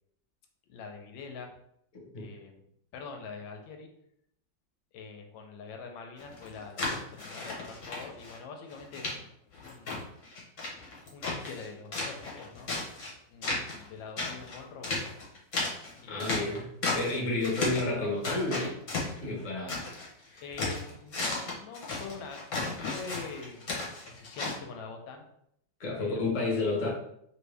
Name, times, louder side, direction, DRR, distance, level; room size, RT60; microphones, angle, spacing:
voice 1, 0.7-1.5 2.2-3.9 4.9-9.3 9.6-10.1 11.1-12.7 13.3-14.9 16.0-16.5 20.4-23.8 24.0-25.3 26.0-26.9, left 5 dB, 90° left, 4 dB, 1.3 m, -45 dB
sound 1, 6.2-8.4 8.7-9.1 9.5-11.7 11.9-13.1 13.4-13.9 14.2-17.2 17.4-17.9 18.2-20.1 20.4-24.5, left 3 dB, 55° left, 1.0 m, -34 dB
voice 2, 16.1-16.7 16.9-18.8 19.2-19.8 20.3-20.4 25.8-26.9, left 2 dB, 35° left, -3 dB, 0.7 m, -31 dB
2.8 x 2.6 x 3.2 m, 0.74 s
omnidirectional pair, 2.0 m